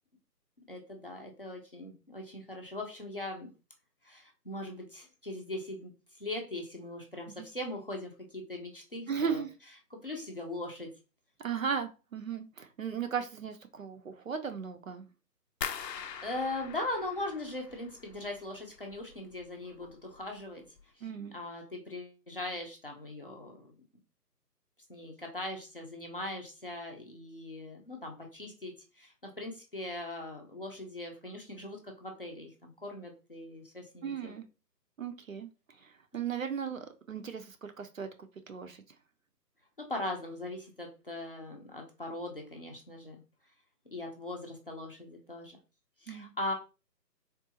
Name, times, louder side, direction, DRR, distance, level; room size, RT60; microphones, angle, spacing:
voice 1, 0.7-3.5 4.0-5.9 6.2-9.4 9.9-10.9 16.2-20.6 21.0-23.8 24.9-34.3 39.8-43.2 43.9-45.6 46.0-46.5, left 2 dB, 35° left, 1 dB, 0.5 m, -40 dB
voice 2, 9.1-9.5 11.4-15.0 21.0-21.3 34.0-34.5 35.0-35.5 36.1-38.1 38.5-38.8 46.1-46.3, right 7 dB, 55° right, 7 dB, 0.5 m, -36 dB
sound 1, 15.6-18.5 18.8-19.5 19.8-20.2 20.7-20.8, left 7 dB, 80° left, 0.6 m, -42 dB
3.6 x 2.3 x 2.7 m, 0.31 s
figure-of-eight pair, 155°, 49 cm